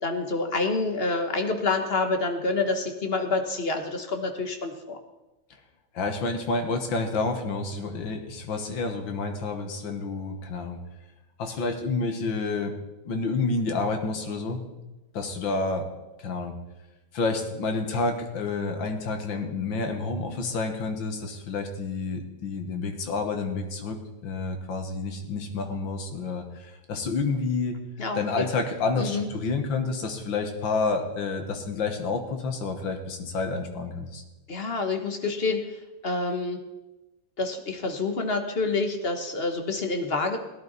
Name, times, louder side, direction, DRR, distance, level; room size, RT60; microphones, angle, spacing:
voice 1, 0.0-5.0 28.0-28.5 29.0-29.3 34.5-35.8 36.0-36.6 37.4-40.4, left 3 dB, 35° left, 5 dB, 1.3 m, -27 dB
voice 2, 5.9-10.8 11.4-12.7 13.0-14.6 15.1-15.9 16.2-16.6 17.1-27.8 28.1-34.2, left 3 dB, 80° left, 5 dB, 2.2 m, -29 dB
17.0 x 11.5 x 4.1 m, 1.1 s
omnidirectional pair, 2.0 m